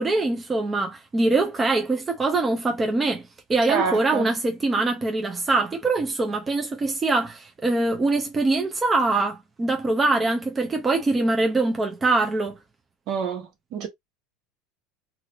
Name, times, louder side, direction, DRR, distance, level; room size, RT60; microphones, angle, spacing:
voice 1, 0.0-3.2 3.5-12.5, right 2 dB, 20° right, 0.8 m, -23 dB
voice 2, 3.7-4.3 13.1-13.9, right 6 dB, 55° right, 1.4 m, -27 dB
3.0 x 2.7 x 3.0 m
supercardioid pair, 100°, 0 cm